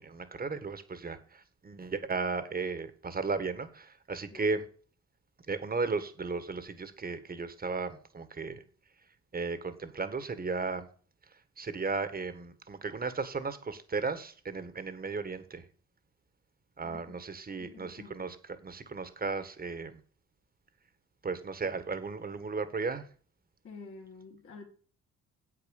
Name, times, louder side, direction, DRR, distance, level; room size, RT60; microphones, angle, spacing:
voice 1, 0.0-4.6 5.5-8.6 9.3-10.9 11.6-15.6 16.8-18.4 18.6-20.0 21.2-23.1, right 4 dB, 30° right, 1.6 m, -35 dB
voice 2, 16.8-17.2 17.6-18.3 23.6-24.7, left 4 dB, 45° left, 2.0 m, -49 dB
9.0 x 8.1 x 6.5 m
cardioid pair, 90°, 30 cm